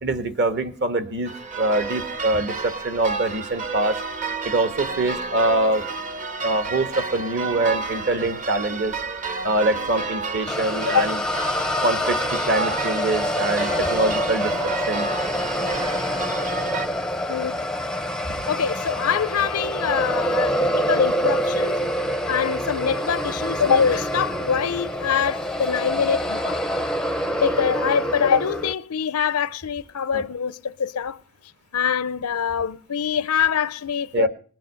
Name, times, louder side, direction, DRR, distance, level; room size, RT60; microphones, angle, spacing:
voice 1, 0.0-4.0 4.4-5.8 6.4-8.9 9.4-11.2 11.8-14.5 14.9-15.1 18.3-18.4 30.1-30.2 34.1-34.3, right 2 dB, 50° right, 1.3 m, -24 dB
sound 1, 1.3-16.9, right 4 dB, 35° right, 0.8 m, -31 dB
sound 2, 10.5-28.7, equal, 5° left, 0.6 m, -26 dB
voice 2, 17.3-17.6 18.5-21.8 22.3-26.6 27.4-31.2 31.7-34.3, left 7 dB, 85° left, 0.6 m, -24 dB
20.0 x 7.7 x 6.5 m
head